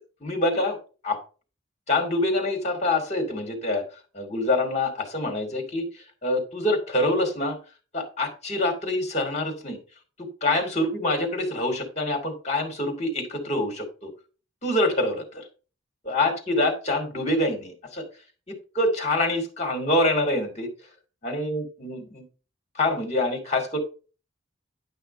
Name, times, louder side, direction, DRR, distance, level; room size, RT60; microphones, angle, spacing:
voice 1, 0.2-0.8 1.0-1.2 1.9-3.8 4.1-7.6 7.9-9.8 10.4-14.1 14.6-15.5 16.0-18.0 18.5-20.7 21.2-22.2 22.7-23.8, left 1 dB, 35° left, 5 dB, 2.6 m, -26 dB
10.5 x 5.7 x 4.2 m, 0.35 s
head